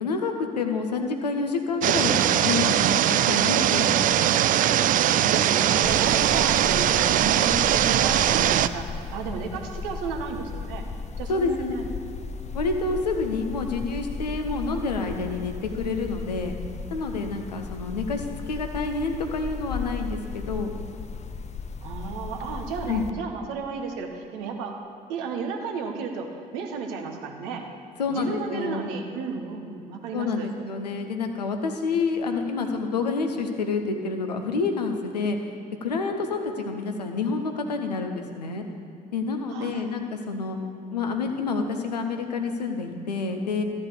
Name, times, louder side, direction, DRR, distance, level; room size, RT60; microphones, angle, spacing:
voice 1, 0.0-4.2 11.3-11.7 12.5-16.5 16.9-20.7 22.9-23.1 28.0-28.9 30.1-35.4 35.8-38.6 39.1-40.6 40.9-43.6, left 4 dB, 85° left, 5 dB, 0.8 m, -28 dB
sound 1, 1.8-8.7, right 11 dB, 40° right, 0.4 m, -21 dB
voice 2, 4.8-10.9 11.2-11.8 21.8-24.8 25.1-27.7 28.1-30.5 39.5-39.9, right 5 dB, 70° right, 3 dB, 1.1 m, -33 dB
sound 2, 5.8-23.1, left 4 dB, 35° left, 0.7 m, -36 dB
13.0 x 5.2 x 8.4 m, 2.6 s
figure-of-eight pair, 45°, 20 cm